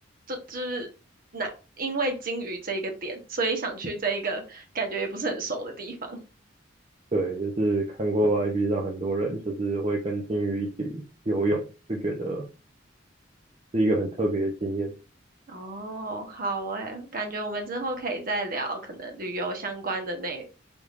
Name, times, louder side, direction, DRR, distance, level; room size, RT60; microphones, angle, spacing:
voice 1, 0.3-0.9 1.3-1.5 1.8-6.2 15.5-20.4, right 3 dB, 50° right, 4 dB, 1.0 m, -31 dB
voice 2, 7.1-11.6 11.9-12.4 13.7-14.9, right 2 dB, 35° right, -1 dB, 0.7 m, -26 dB
4.8 x 3.5 x 2.5 m, 0.32 s
head